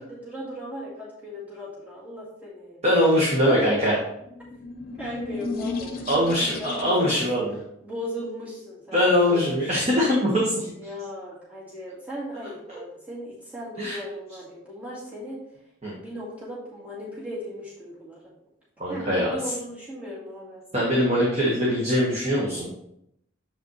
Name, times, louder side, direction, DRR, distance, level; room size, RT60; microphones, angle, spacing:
voice 1, 0.0-2.8 3.4-3.9 5.0-6.0 6.4-7.2 7.8-9.8 10.8-15.4 15.9-18.3 18.9-20.6, equal, 10° right, -8 dB, 2.1 m, -36 dB
voice 2, 2.8-3.9 6.1-7.6 8.9-10.7 13.8-14.0 15.8-15.9 18.8-19.3 20.7-22.7, equal, 35° right, -5 dB, 1.5 m, -22 dB
sound 1, 4.1-7.2, left 3 dB, 50° left, 0.8 m, -34 dB
7.6 x 5.0 x 3.2 m, 0.76 s
head